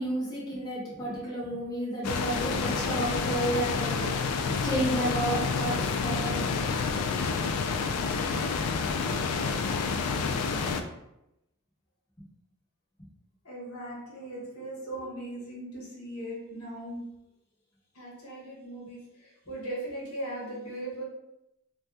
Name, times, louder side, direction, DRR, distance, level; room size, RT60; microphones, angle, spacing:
voice 1, 0.0-6.6, right 1 dB, 20° left, -7 dB, 1.0 m, -32 dB
sound 1, 2.0-10.8, left 5 dB, 90° left, 0.3 m, -29 dB
voice 2, 13.4-17.0 17.9-21.0, right 1 dB, 70° left, -4 dB, 1.0 m, -39 dB
2.7 x 2.2 x 3.4 m, 0.86 s
head